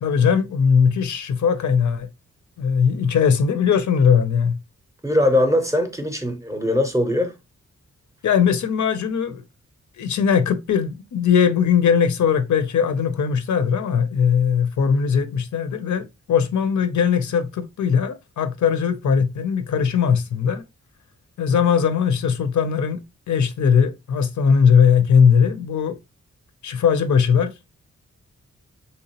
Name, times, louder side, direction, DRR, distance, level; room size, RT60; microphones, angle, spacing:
voice 1, 0.0-2.1 2.6-4.6 8.2-9.4 10.0-20.6 21.4-23.0 23.3-26.0 26.6-27.5, left 7 dB, 80° left, 0.6 m, -19 dB
voice 2, 5.0-7.3, left 1 dB, 10° right, 0.6 m, -20 dB
3.4 x 2.8 x 2.8 m
wide cardioid pair, 170°, 29 cm